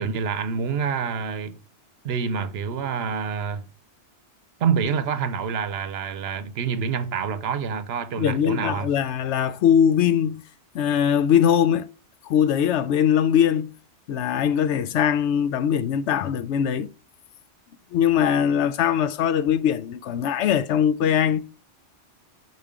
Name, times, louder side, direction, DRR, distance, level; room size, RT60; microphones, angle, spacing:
voice 1, 0.0-1.6 2.0-3.6 4.6-8.9, right 6 dB, 65° right, 0.8 m, -27 dB
voice 2, 8.2-10.4 10.7-11.9 12.2-13.7 14.1-16.9 17.9-21.4, left 9 dB, 80° left, 0.9 m, -21 dB
6.0 x 5.2 x 3.6 m
omnidirectional pair, 1.2 m